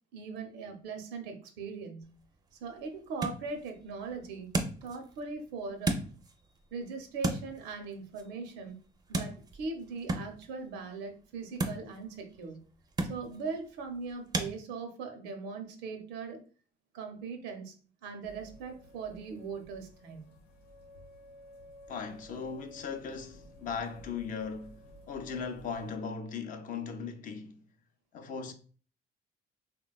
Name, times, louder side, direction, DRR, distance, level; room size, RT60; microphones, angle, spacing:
voice 1, 0.1-2.1 2.6-4.5 4.8-6.0 6.7-8.8 9.1-12.6 13.1-16.4 16.9-17.8 18.0-20.3, right 4 dB, 85° right, 0.6 m, -40 dB
sound 1, 2.0-14.5, right 2 dB, 25° right, 0.4 m, -38 dB
sound 2, 18.2-26.0, equal, 85° left, 0.8 m, -54 dB
voice 2, 21.9-24.8 25.1-27.6 28.1-28.5, left 5 dB, 55° left, 0.5 m, -38 dB
3.4 x 2.2 x 2.3 m
cardioid pair, 110°, 17 cm